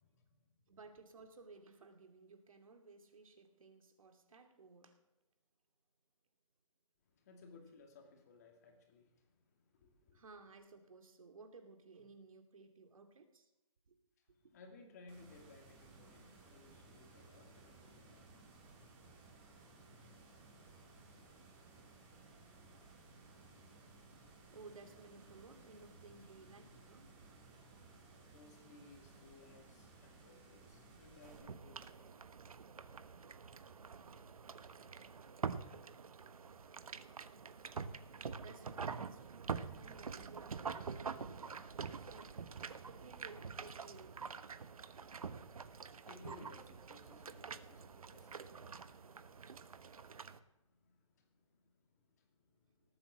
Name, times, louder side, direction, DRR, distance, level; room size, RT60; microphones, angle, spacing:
voice 1, 0.0-0.6 7.0-10.2 14.2-21.8 28.3-32.3 45.8-53.0, left 3 dB, 30° left, 4 dB, 2.3 m, -62 dB
voice 2, 0.7-5.0 10.1-13.5 13.9-14.0 24.5-27.4 38.4-44.4, right 4 dB, 75° right, 6 dB, 2.6 m, -58 dB
sound 1, 15.1-31.4, right 3 dB, 20° right, 3.1 m, -60 dB
sound 2, 31.2-50.4, right 5 dB, 90° right, 1.1 m, -46 dB
19.0 x 8.7 x 7.4 m, 0.95 s
hypercardioid pair, 175°, 18 cm